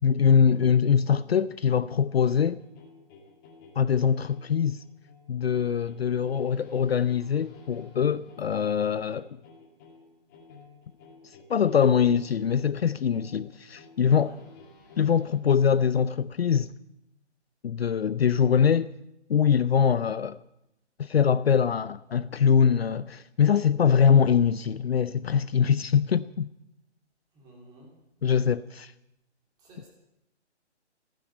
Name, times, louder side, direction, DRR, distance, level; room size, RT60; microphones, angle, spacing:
voice 1, 0.0-2.6 3.8-4.8 5.3-9.3 11.5-14.3 15.0-16.7 17.6-18.9 19.3-20.4 21.0-26.5 28.2-28.9, left 7 dB, 60° left, 0.6 m, -23 dB
sound 1, 2.2-15.3, left 4 dB, 15° left, 2.0 m, -53 dB
voice 2, 14.1-14.4 27.3-28.0 29.6-29.9, right 1 dB, 10° right, 2.8 m, -52 dB
15.0 x 10.0 x 8.8 m
hypercardioid pair, 165°, 35 cm